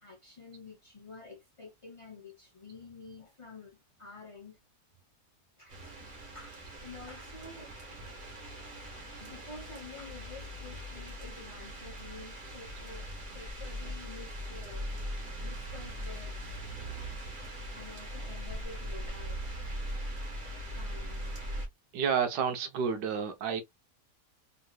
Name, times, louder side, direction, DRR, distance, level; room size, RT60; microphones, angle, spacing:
voice 1, 0.0-4.6 5.6-5.8 6.2-7.7 9.2-14.9 15.4-16.6 17.2-17.5 17.7-19.6 20.3-20.4 20.7-21.4, left 3 dB, 45° left, 0.4 m, -50 dB
sound 1, 5.7-21.7, equal, 35° right, 1.1 m, -40 dB
voice 2, 21.9-23.6, right 6 dB, 80° right, 1.3 m, -30 dB
3.8 x 2.8 x 2.2 m
omnidirectional pair, 1.8 m